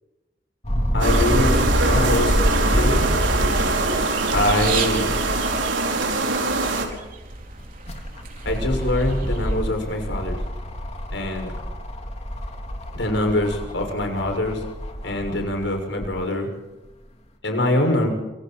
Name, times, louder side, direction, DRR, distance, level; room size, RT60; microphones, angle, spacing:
sound 1, 0.6-5.7 6.2-6.3 7.6-16.1 16.9-17.0, equal, 35° left, 3.8 m, -26 dB
voice 1, 0.9-3.0 4.3-5.2 8.4-10.4 11.1-11.5 12.9-14.6 15.0-16.5 17.4-18.1, left 1 dB, 75° left, 3 dB, 6.7 m, -24 dB
sound 2, 1.0-6.8, right 3 dB, 90° right, 5.1 m, -23 dB
sound 3, 4.4-10.3, right 5 dB, 50° right, 4.5 m, -35 dB
28.0 x 25.5 x 4.6 m, 1.0 s
head